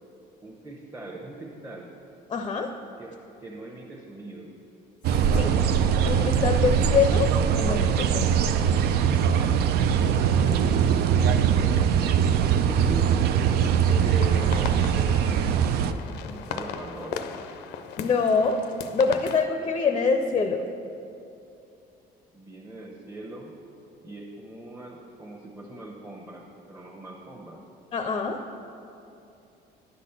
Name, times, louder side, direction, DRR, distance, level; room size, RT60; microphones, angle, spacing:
voice 1, 0.4-1.9 3.0-4.5 10.2-15.7 16.2-17.4 22.3-23.5 24.0-27.6, right 2 dB, 15° right, -4 dB, 1.0 m, -40 dB
voice 2, 2.3-2.7 5.3-5.6 6.0-7.3 7.6-8.4 16.1-16.2 18.0-18.6 18.9-20.6 27.9-28.4, left 5 dB, 30° left, 6 dB, 0.5 m, -24 dB
sound 1, 5.0-15.9, right 8 dB, 70° right, 0.4 m, -22 dB
sound 2, 14.2-19.4, left 7 dB, 90° left, 0.5 m, -37 dB
10.0 x 4.2 x 6.9 m, 2.8 s
cardioid pair, 110°, 17 cm